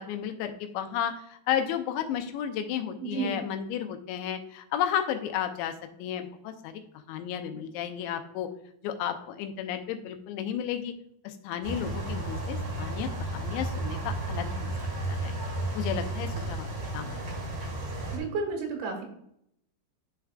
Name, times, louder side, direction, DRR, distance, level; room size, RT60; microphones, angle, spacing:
voice 1, 0.0-5.7 6.0-6.8 7.1-8.5 8.8-10.9 11.2-15.3 15.7-16.7 16.9-17.3, left 9 dB, 85° left, 6 dB, 2.9 m, -33 dB
voice 2, 3.0-3.4 18.1-19.0, right 4 dB, 80° right, 3 dB, 3.9 m, -32 dB
sound 1, 11.6-18.2, right 2 dB, 45° right, 1.8 m, -33 dB
11.0 x 4.6 x 2.4 m, 0.73 s
omnidirectional pair, 5.2 m